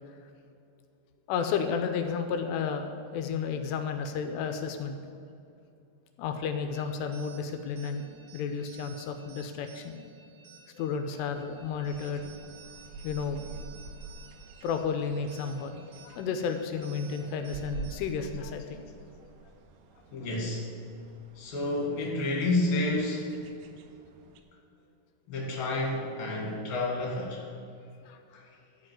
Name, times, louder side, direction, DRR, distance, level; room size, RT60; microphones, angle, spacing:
voice 1, 1.3-5.0 6.2-8.0 8.3-10.0 10.7-12.3 13.0-13.5 14.6-18.8 28.1-28.2, left 6 dB, 80° left, 6 dB, 2.8 m, -32 dB
sound 1, 6.7-18.3, right 5 dB, 55° right, 1.6 m, -55 dB
sound 2, 11.2-24.4, right 4 dB, 80° right, 2.8 m, -48 dB
voice 2, 20.1-20.7 21.4-23.3 25.3-27.4 28.3-28.4, left 2 dB, 40° left, -2 dB, 2.3 m, -30 dB
13.5 x 5.2 x 7.5 m, 2.5 s
omnidirectional pair, 5.1 m